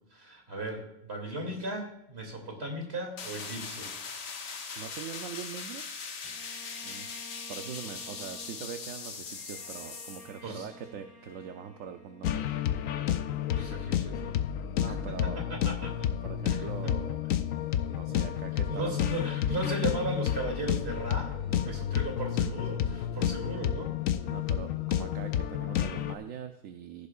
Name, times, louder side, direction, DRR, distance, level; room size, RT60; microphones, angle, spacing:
voice 1, 0.1-3.9 10.4-10.7 13.5-14.4 14.9-15.0 15.5-15.9 16.5-16.9 18.0-21.3 21.6-23.9, right 1 dB, 50° right, 1 dB, 3.0 m, -36 dB
sound 1, 3.2-10.4, left 5 dB, 55° left, 1.2 m, -40 dB
voice 2, 4.8-5.9 6.8-7.1 7.5-12.8 14.7-15.4 16.2-17.2 17.9-19.1 21.5-21.9 24.2-27.1, right 8 dB, 75° right, 6 dB, 1.1 m, -42 dB
Bowed string instrument, 6.2-13.5, left 1 dB, 15° left, 1.8 m, -53 dB
sound 2, 12.2-26.1, left 10 dB, 75° left, 1.0 m, -30 dB
15.5 x 10.5 x 2.4 m, 0.81 s
omnidirectional pair, 1.4 m